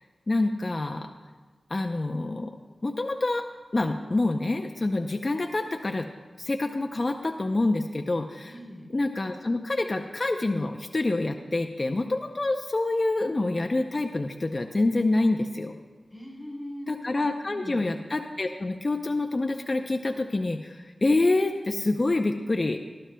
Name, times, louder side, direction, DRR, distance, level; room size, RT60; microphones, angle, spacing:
voice 1, 0.3-1.1 1.7-2.5 2.8-3.4 3.7-6.1 6.4-8.6 8.9-15.8 16.9-22.8, left 2 dB, 40° left, 4 dB, 0.6 m, -27 dB
voice 2, 8.4-8.9 16.1-17.9, equal, ahead, -3 dB, 3.7 m, -41 dB
20.0 x 12.5 x 2.2 m, 1.4 s
wide cardioid pair, 75°, 0 cm